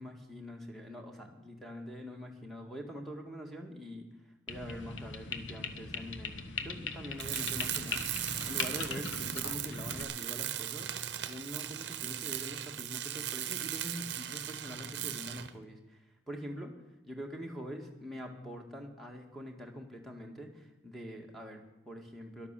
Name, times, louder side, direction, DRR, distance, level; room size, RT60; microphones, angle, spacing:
voice 1, 0.0-4.1 4.5-11.0 11.3-16.7 17.1-22.5, equal, ahead, 2 dB, 1.7 m, -44 dB
sound 1, 4.5-10.0, left 5 dB, 70° left, 1.1 m, -40 dB
Tools, 7.2-15.6, right 11 dB, 60° right, 0.9 m, -38 dB
12.0 x 11.5 x 7.5 m, 1.1 s
head